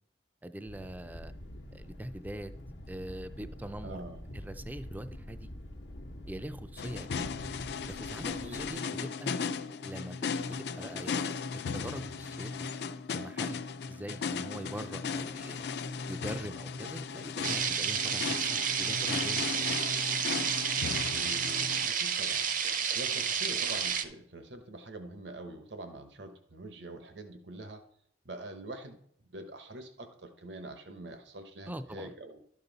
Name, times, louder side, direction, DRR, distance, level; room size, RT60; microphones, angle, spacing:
voice 1, 0.4-1.3 1.7-2.5 2.9-4.0 4.3-5.5 6.3-7.3 7.8-9.3 9.8-10.5 10.8-12.7 13.1-13.6 13.9-15.7 16.1-19.8 31.7-32.1, right 1 dB, 10° right, 11 dB, 0.4 m, -43 dB
Thunder, 0.6-8.7, equal, 80° left, 1.0 m, -46 dB
voice 2, 3.8-4.2 8.3-8.6 21.1-27.8 28.2-29.0 29.3-32.4, right 2 dB, 75° right, 7 dB, 1.0 m, -45 dB
sound 1, 6.8-21.9, left 5 dB, 65° left, 0.4 m, -36 dB
sound 2, 17.4-24.0, right 7 dB, 50° right, 0.7 m, -31 dB
12.0 x 5.4 x 4.0 m, 0.68 s
head